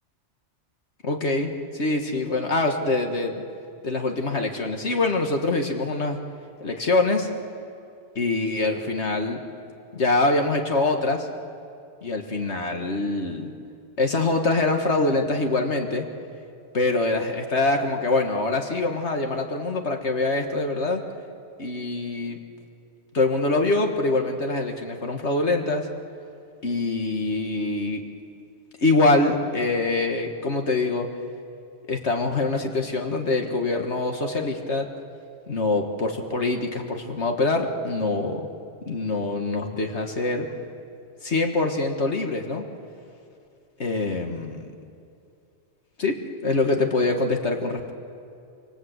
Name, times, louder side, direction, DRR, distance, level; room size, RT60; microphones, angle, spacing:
voice 1, 1.0-3.4 3.8-6.2 6.6-7.3 8.2-9.4 9.9-11.3 12.0-13.5 14.0-16.1 16.7-21.0 21.6-22.4 23.1-25.9 26.6-28.0 28.8-31.1 31.9-34.9 35.5-38.5 38.9-40.5 41.2-42.7 43.8-44.7 46.0-47.9, left 2 dB, 70° left, 3 dB, 1.9 m, -24 dB
27.0 x 25.5 x 8.1 m, 2.5 s
omnidirectional pair, 1.2 m